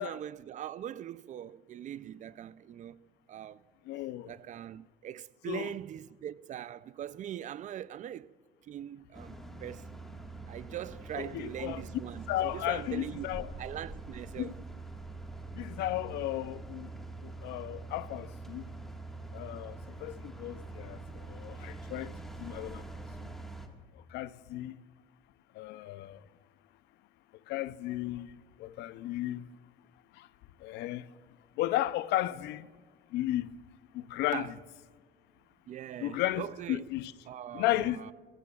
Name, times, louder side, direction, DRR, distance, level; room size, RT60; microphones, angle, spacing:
voice 1, 0.0-3.6 4.3-8.3 8.6-10.2 10.5-14.5 34.3-34.5 35.7-36.8 37.3-38.1, right 11 dB, 45° right, 0.4 m, -42 dB
voice 2, 3.9-4.3 5.5-5.7 11.1-11.8 12.3-13.5 14.4-14.5 15.5-16.9 17.2-18.6 19.3-22.8 23.2-23.3 23.9-24.8 25.5-26.2 27.5-29.5 30.1-30.3 30.6-31.1 31.6-32.7 33.1-33.5 33.9-34.5 36.0-37.1 37.5-38.0, left 15 dB, 90° left, 0.5 m, -34 dB
sound 1, 9.1-23.7, right 3 dB, ahead, 1.6 m, -44 dB
22.5 x 16.5 x 2.4 m
cardioid pair, 110°, 17 cm